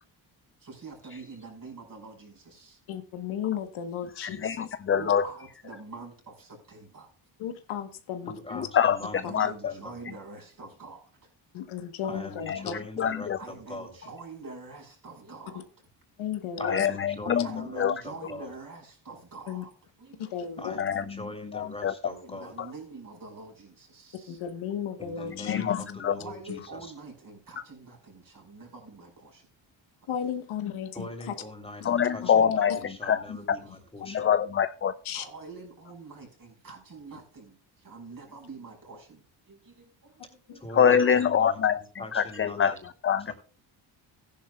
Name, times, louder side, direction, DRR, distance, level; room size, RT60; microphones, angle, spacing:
voice 1, 0.6-2.8 4.9-7.1 9.2-11.0 12.5-12.7 13.4-15.6 17.4-19.7 20.0-20.3 22.2-24.4 26.2-29.5 32.8-33.2 34.1-34.2 35.1-39.2 39.5-40.7, right 3 dB, 45° right, 5.2 m, -45 dB
voice 2, 2.9-4.7 7.4-8.6 11.5-12.7 16.2-16.9 19.5-19.6 20.2-21.0 24.3-25.8 26.5-26.6 30.1-31.3 31.8-32.0 32.7-32.8 35.0-35.3 40.5-40.6, left 9 dB, 85° left, 1.3 m, -34 dB
voice 3, 4.2-5.3 8.5-9.0 9.3-9.7 12.5-12.7 13.0-13.4 16.6-17.9 18.2-18.3 20.8-21.3 21.5-21.9 22.6-22.7 25.3-26.2 31.8-33.6 34.1-34.9 40.7-43.3, left 8 dB, 30° left, 0.4 m, -25 dB
voice 4, 8.3-9.9 12.1-13.9 16.6-18.5 20.6-22.5 25.0-26.8 30.9-34.3 40.6-42.8 43.3-43.4, left 1 dB, 10° left, 3.4 m, -42 dB
15.0 x 10.5 x 2.3 m
cardioid pair, 95°, 47 cm